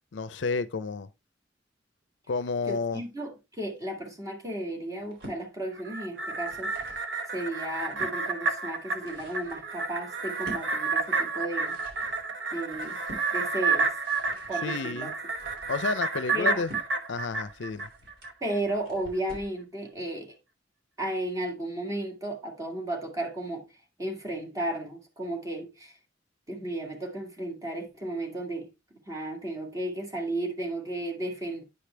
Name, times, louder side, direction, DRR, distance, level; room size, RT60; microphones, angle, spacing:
voice 1, 0.1-1.1 2.3-3.0 14.6-15.1 15.7-16.7 17.1-17.9, left 4 dB, 70° left, 0.5 m, -30 dB
voice 2, 2.7-11.8 12.5-13.0 13.3-13.9 14.5-15.1 16.3-16.6 18.4-20.3 21.0-23.7 24.0-26.0 26.5-28.7 29.1-31.6, right 1 dB, 20° right, 2.2 m, -34 dB
sound 1, 4.9-5.4 6.2-7.1 7.5-8.2 8.7-19.6, equal, 85° right, 4.6 m, -48 dB
sound 2, 5.8-18.3 18.7-18.8, right 4 dB, 65° right, 1.1 m, -30 dB
9.7 x 5.1 x 3.3 m
head